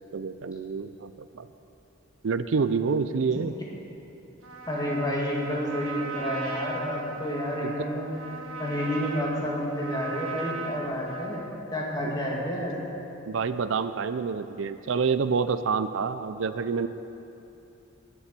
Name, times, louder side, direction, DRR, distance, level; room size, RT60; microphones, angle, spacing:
voice 1, 0.0-1.5 2.2-3.5 7.6-7.7 12.0-12.1 13.3-16.9, right 5 dB, 70° right, 12 dB, 0.5 m, -28 dB
Trumpet, 4.4-11.6, right 4 dB, 90° right, 1.4 m, -38 dB
voice 2, 4.7-8.1 8.6-11.4 11.7-12.8, equal, 20° left, -4 dB, 2.4 m, -30 dB
20.5 x 7.2 x 6.8 m, 2.9 s
head